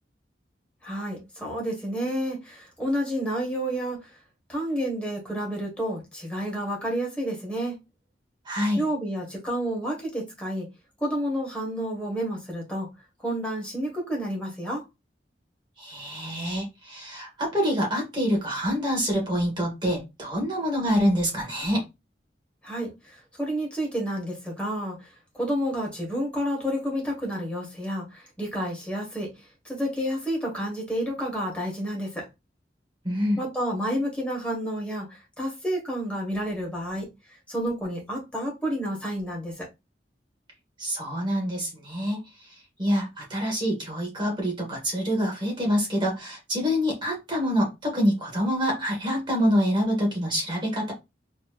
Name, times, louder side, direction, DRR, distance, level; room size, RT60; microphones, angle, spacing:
voice 1, 0.8-4.1 4.5-7.8 8.8-10.7 11.0-12.9 13.2-14.8 22.6-29.3 29.6-32.2 33.4-39.7, equal, 5° left, 1.5 m, -30 dB
voice 2, 8.4-8.8 15.8-21.8 33.0-33.4 40.8-42.2 42.8-50.9, equal, 25° right, 1.6 m, -26 dB
4.2 x 3.0 x 2.4 m
head